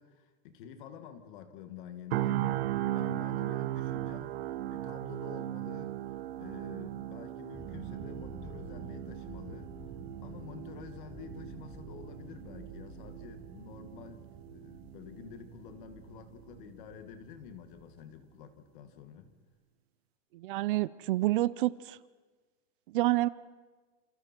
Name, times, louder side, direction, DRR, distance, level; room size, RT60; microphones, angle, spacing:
voice 1, 0.0-4.4 4.7-6.0 6.4-9.7 10.2-19.3, left 8 dB, 55° left, 8 dB, 2.1 m, -49 dB
sound 1, 2.1-16.1 16.5-16.7, right 14 dB, 85° right, 1.2 m, -38 dB
sound 2, 7.5-17.8, right 3 dB, 10° right, 2.7 m, -49 dB
voice 2, 20.3-22.0 22.9-23.3, right 16 dB, 60° right, 19 dB, 0.7 m, -28 dB
28.5 x 28.0 x 4.5 m, 1.4 s
supercardioid pair, 175°, 30 cm